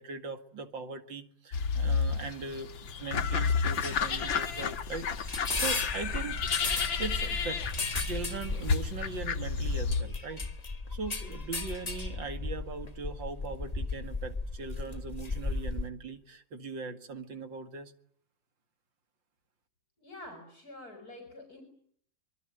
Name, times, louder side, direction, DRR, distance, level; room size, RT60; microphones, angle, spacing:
voice 1, 0.0-6.4 7.0-7.6 8.0-10.4 10.9-17.9, right 4 dB, 80° right, 8 dB, 2.9 m, -40 dB
sound 1, 1.5-10.0, left 6 dB, 85° left, 2.3 m, -31 dB
sound 2, 3.8-15.9, left 3 dB, 20° left, 1.5 m, -35 dB
voice 2, 20.0-21.6, left 1 dB, 50° left, 5 dB, 5.7 m, -47 dB
25.0 x 23.0 x 9.3 m, 0.64 s
omnidirectional pair, 2.0 m